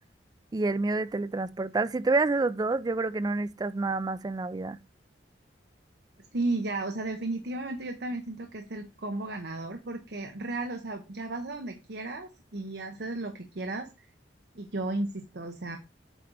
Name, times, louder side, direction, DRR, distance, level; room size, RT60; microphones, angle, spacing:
voice 1, 0.5-4.8, right 3 dB, 20° right, 0.3 m, -28 dB
voice 2, 6.3-14.1 14.5-15.8, right 2 dB, 65° right, 0.9 m, -34 dB
7.9 x 4.7 x 3.8 m
head